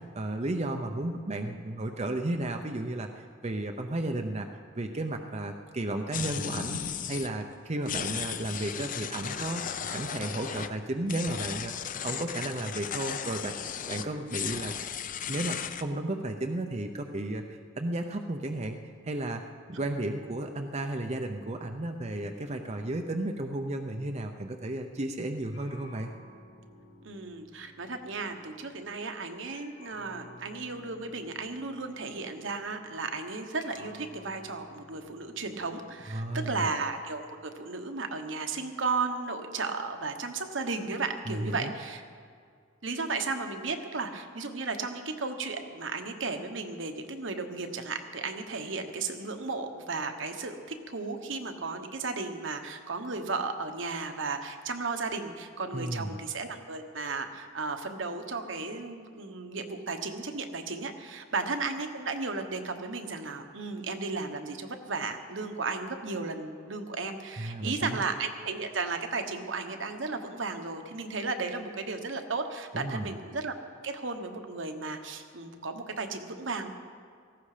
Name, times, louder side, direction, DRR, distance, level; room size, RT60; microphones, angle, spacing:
voice 1, 0.0-4.5 4.7-14.8 15.3-18.8 19.0-19.4 19.7-26.1 36.1-36.7 41.3-41.7 55.7-56.2 67.4-68.0 72.7-73.1, right 1 dB, 35° right, 4 dB, 0.7 m, -33 dB
sound 1, 6.1-7.3 7.9-10.7 11.0-15.9, left 7 dB, 45° left, 0.6 m, -35 dB
sound 2, 25.5-29.2 29.5-36.6, left 1 dB, 70° left, 5.2 m, -54 dB
voice 2, 27.0-42.0 42.8-73.6 73.8-76.7, right 4 dB, 70° right, 6 dB, 1.3 m, -34 dB
18.0 x 15.5 x 5.0 m, 2.2 s
head